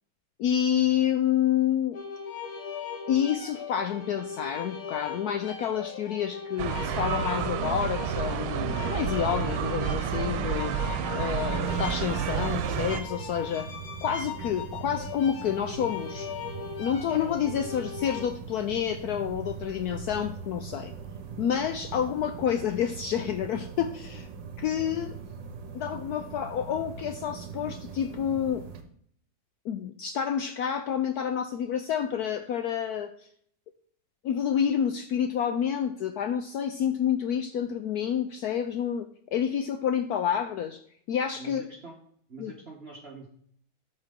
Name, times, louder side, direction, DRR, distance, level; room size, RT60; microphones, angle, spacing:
voice 1, 0.4-2.0 3.1-13.7 14.0-16.3 16.8-20.9 21.4-24.3 24.6-25.2 25.7-28.6 29.6-33.1 34.2-40.8 41.1-41.6 42.4-42.5, left 9 dB, 85° left, 8 dB, 0.8 m, -29 dB
sound 1, 1.9-18.3, left 6 dB, 55° left, 1.2 m, -39 dB
sound 2, 6.6-13.0, right 8 dB, 85° right, 1.5 m, -30 dB
sound 3, 11.7-28.8, right 6 dB, 65° right, 1.5 m, -41 dB
voice 2, 41.3-42.0 42.3-43.3, right 3 dB, 35° right, 0 dB, 1.2 m, -44 dB
13.0 x 4.6 x 3.7 m, 0.62 s
omnidirectional pair, 2.2 m